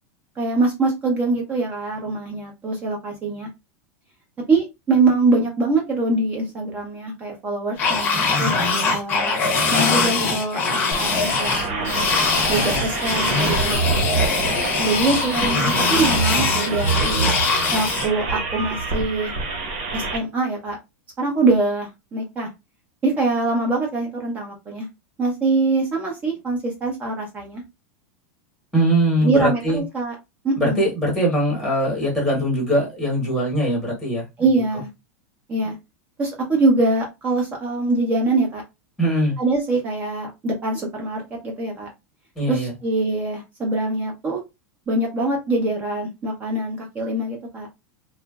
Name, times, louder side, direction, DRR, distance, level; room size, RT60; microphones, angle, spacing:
voice 1, 0.4-3.5 4.5-9.3 9.7-12.1 12.5-13.8 14.1-14.2 14.8-17.3 17.7-19.3 19.9-20.8 21.2-22.5 23.0-24.9 25.2-27.6 29.2-30.1 30.4-30.9 34.4-34.9 35.5-35.8 36.2-38.6 39.4-41.9 42.5-44.4 44.9-47.7, right 3 dB, 20° right, 0.6 m, -23 dB
sound 1, 7.8-18.1, left 4 dB, 20° left, 0.8 m, -22 dB
sound 2, 10.9-20.2, right 4 dB, 55° right, 1.0 m, -26 dB
voice 2, 28.7-29.8 30.6-34.3 39.0-39.4 42.4-42.7, right 1 dB, ahead, 1.1 m, -21 dB
2.9 x 2.4 x 2.3 m
supercardioid pair, 165°, 8 cm